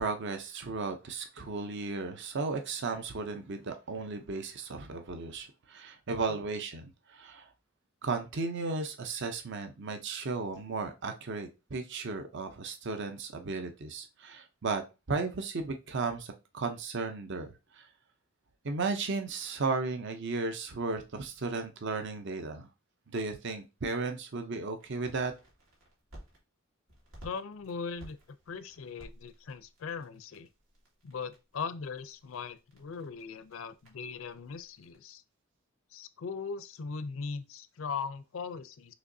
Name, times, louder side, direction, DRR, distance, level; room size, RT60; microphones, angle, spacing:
voice 1, 0.0-7.5 8.0-14.8 15.1-17.5 17.7-17.9 18.6-22.7 23.1-25.3, right 3 dB, 55° right, 0.6 m, -35 dB
sound 1, 24.8-26.4 26.9-35.0, equal, 75° right, 2.0 m, -56 dB
voice 2, 27.2-28.2 28.5-30.5 31.0-35.2 35.9-38.9, left 5 dB, 65° left, 0.4 m, -39 dB
6.4 x 3.0 x 2.6 m
head